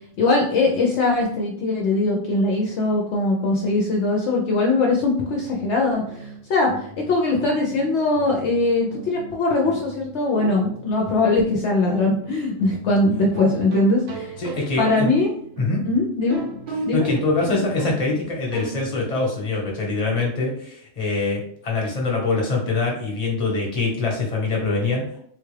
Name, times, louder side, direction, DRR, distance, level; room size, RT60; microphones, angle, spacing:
voice 1, 0.2-6.7 7.1-14.3 14.8-15.3 15.9-16.4 16.8-17.1, left 2 dB, 65° left, -1 dB, 0.8 m, -21 dB
sound 1, 5.0-19.2, right 3 dB, 65° right, 0.8 m, -37 dB
voice 2, 14.4-15.1 15.6-15.9 16.9-25.0, left 3 dB, 35° left, -1 dB, 1.0 m, -24 dB
3.8 x 2.3 x 3.2 m, 0.65 s
omnidirectional pair, 1.3 m